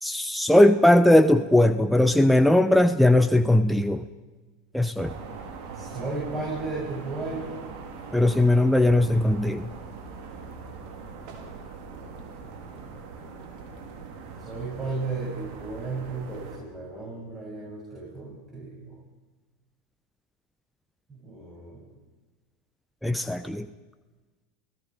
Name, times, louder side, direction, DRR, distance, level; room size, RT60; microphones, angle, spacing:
voice 1, 0.0-4.0 4.7-5.1 8.1-9.7 23.0-23.7, left 1 dB, 5° left, 10 dB, 0.8 m, -19 dB
sound 1, 5.0-16.6, right 4 dB, 60° right, 4.3 m, -41 dB
voice 2, 5.7-7.6 14.4-19.0 21.1-21.9, right 3 dB, 25° right, -4 dB, 7.8 m, -34 dB
29.0 x 18.0 x 5.2 m, 1.2 s
hypercardioid pair, 90°, 0 cm